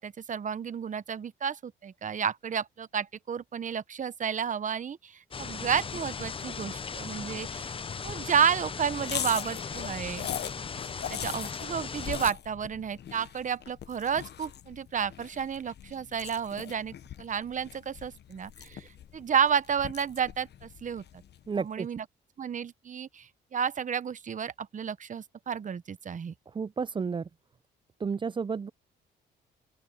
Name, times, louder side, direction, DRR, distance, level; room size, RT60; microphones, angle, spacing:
voice 1, 0.0-7.7 8.0-10.3 11.1-18.9 19.1-21.0 21.6-22.0 22.4-26.3, right 7 dB, 40° right, 0.9 m, -31 dB
sound 1, 5.3-12.3, left 5 dB, 25° left, 0.6 m, -38 dB
sound 2, 9.0-21.5, left 10 dB, 60° left, 1.0 m, -41 dB
voice 2, 21.5-21.9 26.5-27.3 28.0-28.7, right 5 dB, 25° right, 0.5 m, -31 dB
open air
cardioid pair, 90°, 20 cm